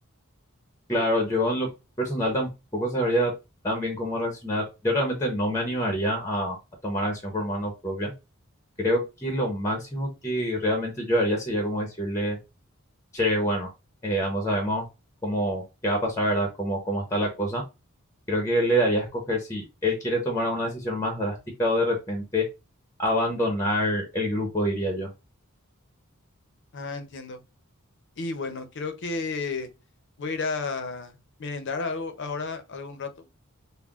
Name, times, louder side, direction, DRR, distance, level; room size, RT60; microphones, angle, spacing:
voice 1, 0.9-1.7 2.0-3.3 3.6-6.6 6.8-8.1 8.8-12.4 13.1-13.7 14.0-14.9 15.2-17.6 18.3-22.5 23.0-25.1, equal, 15° left, 0.8 m, -26 dB
voice 2, 26.7-27.4 28.2-29.7 30.2-33.3, left 4 dB, 60° left, 0.7 m, -32 dB
5.4 x 2.1 x 2.4 m
head